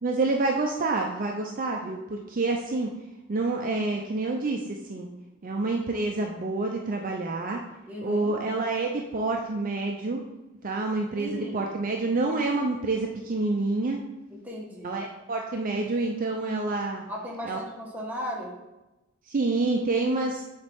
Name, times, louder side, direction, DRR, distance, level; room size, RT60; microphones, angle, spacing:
voice 1, 0.0-2.9 3.3-5.1 5.4-7.6 8.0-10.2 10.6-14.0 14.8-17.0 17.4-17.6 19.3-20.4, right 3 dB, 40° right, 2 dB, 0.5 m, -28 dB
voice 2, 7.9-8.4 11.1-11.7 14.3-15.0 17.1-18.6, equal, 10° right, -3 dB, 1.2 m, -36 dB
7.8 x 4.1 x 3.5 m, 1.0 s
head